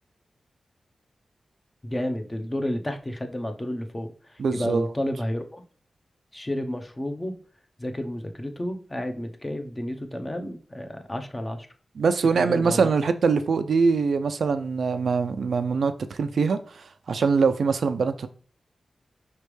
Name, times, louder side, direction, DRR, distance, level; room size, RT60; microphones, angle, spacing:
voice 1, 1.8-5.6 6.3-7.4 7.8-11.7 12.3-12.9, left 1 dB, 25° left, 0.8 m, -31 dB
voice 2, 4.4-4.9 12.0-15.9 16.2-18.3, right 5 dB, 80° right, 0.4 m, -23 dB
5.0 x 3.3 x 3.2 m
cardioid pair, 55°, 0 cm